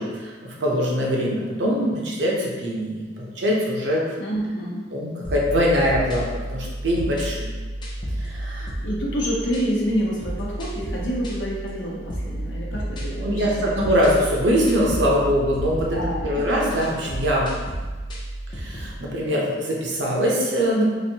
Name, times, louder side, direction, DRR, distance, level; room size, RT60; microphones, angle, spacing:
voice 1, 0.0-4.0 4.9-7.5 8.2-8.7 13.2-17.5 18.5-20.9, equal, 70° right, -3 dB, 0.7 m, -23 dB
voice 2, 4.2-4.9 8.8-13.9 15.9-16.5, equal, 70° left, -4 dB, 0.8 m, -28 dB
sound 1, 5.2-19.0, right 1 dB, 25° left, 0.5 m, -31 dB
3.1 x 2.6 x 2.8 m, 1.3 s
head